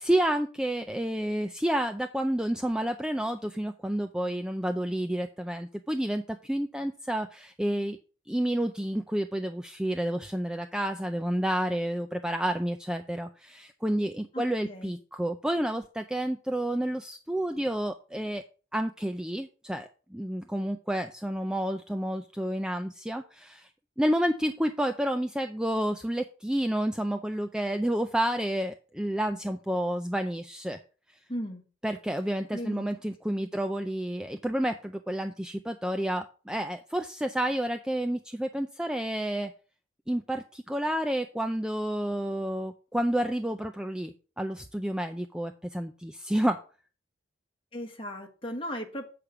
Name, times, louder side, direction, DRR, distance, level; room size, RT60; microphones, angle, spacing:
voice 1, 0.0-8.0 8.3-18.4 18.7-23.7 24.0-30.8 31.8-39.5 40.1-46.6, right 1 dB, 5° right, 6 dB, 0.4 m, -30 dB
voice 2, 14.3-15.0 31.3-31.6 32.5-32.9 33.3-33.5 47.7-49.1, equal, 25° left, 3 dB, 1.6 m, -37 dB
8.3 x 5.0 x 5.9 m, 0.36 s
head